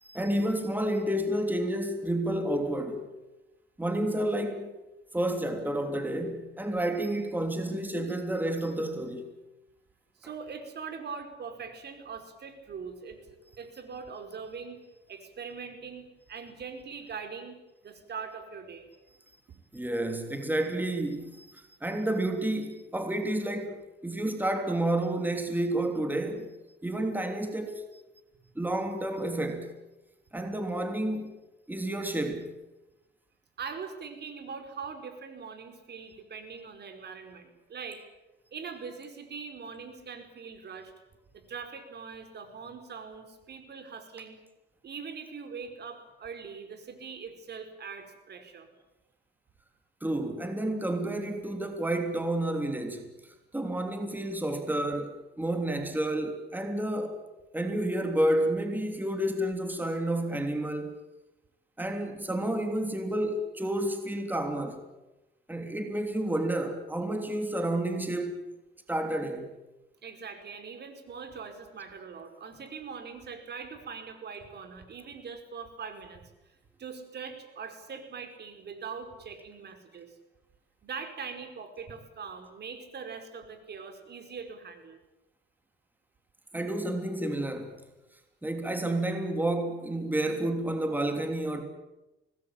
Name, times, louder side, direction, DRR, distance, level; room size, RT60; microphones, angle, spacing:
voice 1, 0.0-3.1 3.8-4.7 5.1-9.3 19.7-26.5 26.8-28.0 28.5-29.8 30.3-31.3 31.7-32.6 50.0-57.2 57.5-61.0 61.8-64.8 65.5-68.4 68.9-69.5 86.5-87.8 88.4-91.6, right 1 dB, 10° right, 3.2 m, -30 dB
voice 2, 10.2-14.8 15.1-17.6 17.8-18.9 33.6-38.0 38.5-40.9 41.3-44.4 44.8-48.7 70.0-80.1 80.8-85.0, right 5 dB, 55° right, 4.9 m, -42 dB
25.0 x 19.5 x 8.8 m
cardioid pair, 90°, 20 cm